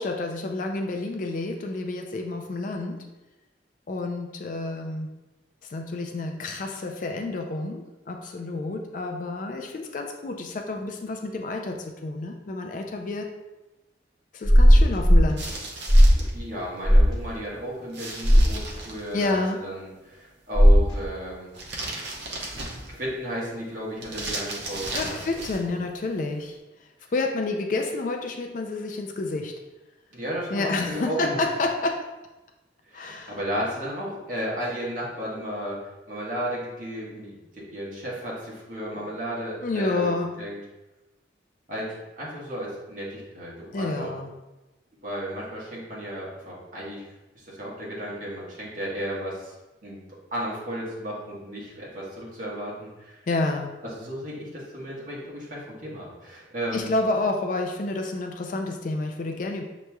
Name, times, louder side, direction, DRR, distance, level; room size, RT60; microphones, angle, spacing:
voice 1, 0.0-3.1 3.9-5.1 5.7-13.3 14.3-15.5 19.1-19.6 24.9-29.6 30.5-32.1 32.9-33.4 38.9-39.1 39.6-40.5 43.7-44.3 53.3-53.8 56.7-59.6, left 2 dB, 45° left, 4 dB, 0.3 m, -29 dB
sound 1, 14.4-15.3 15.9-16.3 16.8-17.1 18.2-18.5 20.6-20.9, equal, 20° left, 1.0 m, -15 dB
sound 2, 15.4-16.3 17.9-19.4 21.5-23.1 24.0-25.7, right 2 dB, 70° right, 0.8 m, -35 dB
voice 2, 16.3-21.5 22.0-22.6 22.9-25.4 30.1-31.5 32.9-40.1 40.4-40.6 41.7-44.1 45.0-47.1 47.3-49.5 49.8-50.0 50.3-53.2 53.8-56.9, equal, 45° right, -6 dB, 1.3 m, -34 dB
6.5 x 2.9 x 2.3 m, 1.0 s
head